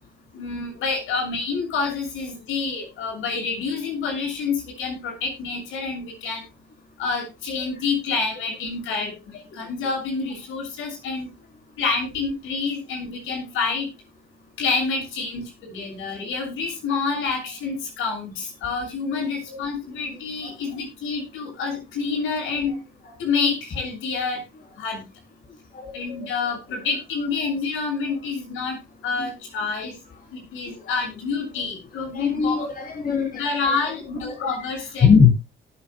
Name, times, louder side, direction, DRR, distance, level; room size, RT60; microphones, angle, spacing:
voice 1, 0.3-6.4 7.0-11.3 11.8-13.9 14.6-22.8 23.2-24.4 24.8-25.0 25.9-28.8 29.0-30.0 30.3-32.6 33.4-35.1, left 4 dB, 85° left, 2 dB, 6.8 m, -28 dB
voice 2, 25.7-26.2 29.2-29.3 30.7-30.9 31.6-31.7 32.1-33.9 34.2-34.7 35.0-35.3, left 6 dB, 45° left, 2 dB, 3.7 m, -22 dB
18.5 x 7.9 x 2.3 m, 0.25 s
cardioid pair, 90°, 20 cm